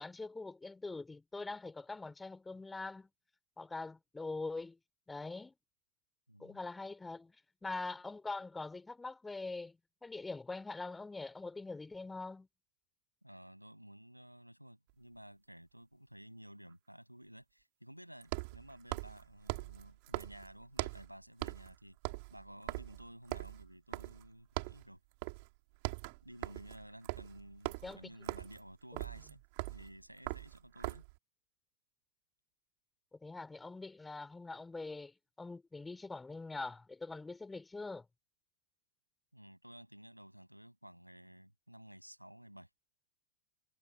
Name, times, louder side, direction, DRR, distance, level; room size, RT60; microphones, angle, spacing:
voice 1, 0.0-3.1 3.6-4.8 5.1-5.5 6.4-7.4 7.6-12.5 27.8-28.1 33.1-38.1, left 3 dB, 10° left, 3.6 m, -43 dB
voice 2, 6.3-6.6 13.2-22.0 22.3-25.0 26.2-29.4 29.6-31.0 39.3-42.7, equal, 90° right, 7.5 m, -54 dB
sound 1, 14.9-15.0 18.2-21.1 21.4-21.7 22.0-24.3 24.6-24.9 25.2-25.5 25.7-31.2, right 29 dB, 45° right, 4.6 m, -41 dB
figure-of-eight pair, 90°, 0 cm